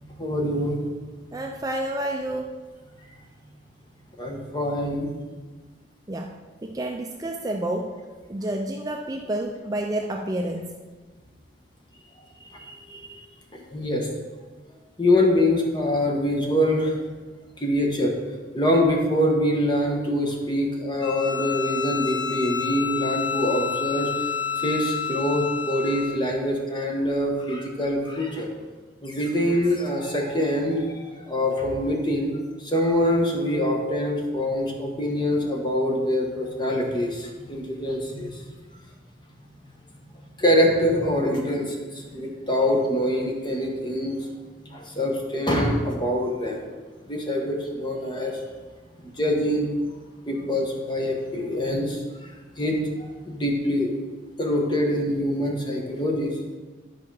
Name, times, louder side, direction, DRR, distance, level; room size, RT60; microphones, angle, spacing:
voice 1, 0.2-0.8 4.2-5.1 12.5-13.2 13.7-14.1 15.0-17.0 17.6-18.1 18.5-24.1 24.6-28.5 29.0-31.0 31.3-32.3 32.6-38.4 40.4-44.2 44.7-46.6 47.1-48.4 49.2-49.7 50.3-52.3 52.6-52.8 53.3-53.9 54.4-56.6, left 1 dB, 25° left, 0 dB, 1.2 m, -24 dB
voice 2, 1.3-2.5 6.1-10.8, right 1 dB, 20° right, 2 dB, 0.4 m, -30 dB
Bowed string instrument, 21.0-26.2, left 8 dB, 65° left, 0.6 m, -29 dB
11.0 x 4.8 x 4.7 m, 1.3 s
head